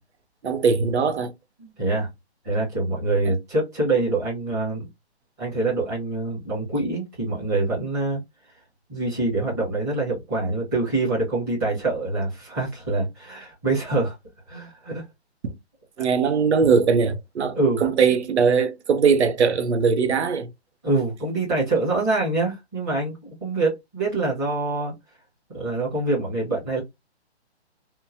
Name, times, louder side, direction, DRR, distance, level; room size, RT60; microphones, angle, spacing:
voice 1, 0.4-1.3 3.2-3.3 15.4-15.6 16.0-20.5, right 5 dB, 80° right, 0.8 m, -21 dB
voice 2, 1.6-2.1 2.4-4.8 5.4-8.2 8.9-14.1 14.5-15.0 16.0-16.1 17.5-17.8 20.8-24.9 25.5-26.8, right 2 dB, 15° right, 1.2 m, -25 dB
2.9 x 2.2 x 2.5 m
hypercardioid pair, 175°, 33 cm